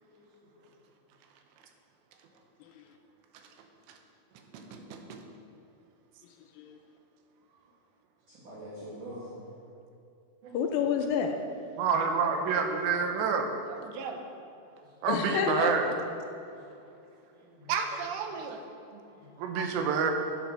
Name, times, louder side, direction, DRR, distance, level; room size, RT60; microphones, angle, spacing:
voice 1, 0.1-0.5 5.0-5.1 8.4-9.3 14.6-14.8 17.4-17.7 19.0-19.4, equal, 55° right, -10 dB, 3.1 m, -45 dB
voice 2, 4.5-5.2 10.4-10.6 11.8-14.2 15.0-15.9 17.7-18.6 18.9-19.0 19.4-20.1, right 5 dB, 90° right, 4 dB, 3.2 m, -29 dB
voice 3, 6.2-6.8 10.5-11.3 15.1-15.9, left 7 dB, 80° left, 4 dB, 2.2 m, -30 dB
10.0 x 7.8 x 6.2 m, 2.6 s
omnidirectional pair, 4.9 m